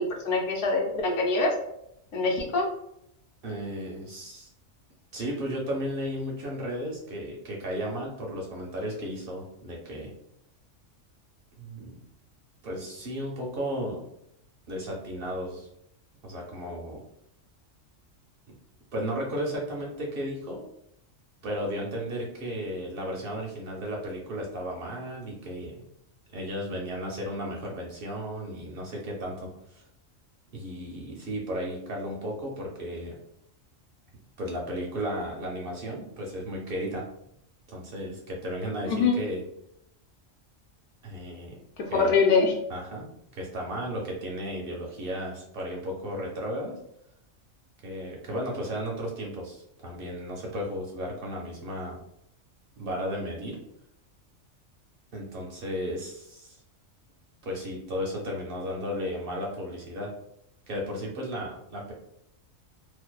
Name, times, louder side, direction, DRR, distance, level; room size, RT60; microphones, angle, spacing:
voice 1, 0.0-1.5 2.1-2.7 38.9-39.2 41.9-42.6, left 4 dB, 70° left, 1 dB, 0.9 m, -24 dB
voice 2, 3.4-4.5 5.1-10.1 11.6-12.0 12.6-14.0 14.7-15.7 16.2-17.0 18.9-20.7 21.4-25.9 26.3-29.8 30.5-33.2 34.4-37.0 37.7-39.4 41.0-41.6 41.9-42.1 42.7-43.1 43.3-46.8 47.8-52.0 52.8-53.6 55.1-56.6 57.4-60.1 60.7-61.9, equal, 60° right, -2 dB, 0.6 m, -34 dB
2.6 x 2.1 x 2.2 m, 0.77 s
omnidirectional pair, 1.4 m